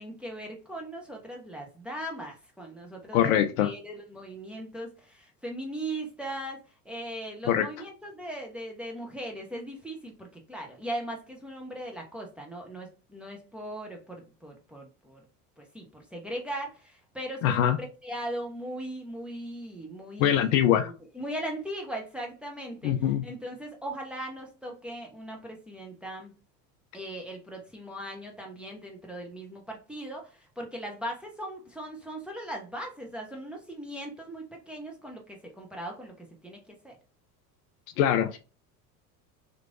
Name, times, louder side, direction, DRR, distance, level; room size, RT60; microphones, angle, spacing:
voice 1, 0.0-15.2 15.6-22.9 23.2-26.3 26.9-37.0, right 1 dB, ahead, 0 dB, 0.7 m, -39 dB
voice 2, 3.1-3.7 7.5-7.7 17.4-17.8 20.2-20.9 22.8-23.3 38.0-38.4, left 10 dB, 60° left, 9 dB, 0.6 m, -23 dB
3.0 x 2.6 x 2.4 m, 0.31 s
hypercardioid pair, 80°, 47 cm